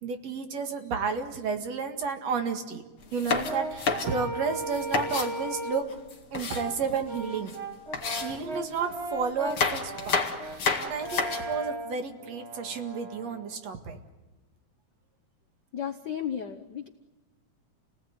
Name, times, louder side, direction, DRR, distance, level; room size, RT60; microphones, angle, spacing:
voice 1, 0.0-2.8 3.1-5.8 6.3-7.5 8.2-14.0, right 5 dB, 65° right, 6 dB, 3.0 m, -32 dB
sound 1, 3.0-5.3 5.9-7.2 7.5-7.6 7.9-8.9 9.4-11.6, left 5 dB, 45° left, 2.8 m, -30 dB
Brass instrument, 3.4-5.9 6.5-13.5, right 2 dB, 30° right, 1.2 m, -37 dB
voice 2, 15.7-16.9, left 9 dB, 70° left, 6 dB, 1.0 m, -34 dB
29.0 x 19.0 x 9.5 m, 1.2 s
omnidirectional pair, 3.4 m